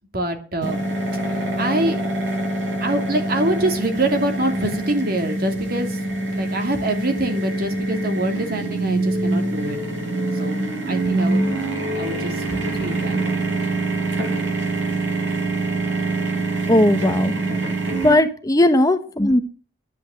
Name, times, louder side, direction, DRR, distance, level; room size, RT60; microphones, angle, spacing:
voice 1, 0.1-0.8 1.3-2.0 2.8-6.0 6.3-9.8 10.3-10.6 10.8-11.4 11.9-12.4 12.7-13.2, right 1 dB, 50° right, 5 dB, 2.9 m, -25 dB
sound 1, 0.6-18.1, right 2 dB, 75° right, 7.3 m, -24 dB
voice 2, 16.7-17.3 18.0-19.4, left 1 dB, 20° left, 9 dB, 1.0 m, -17 dB
10.5 x 8.4 x 8.9 m, 0.39 s
head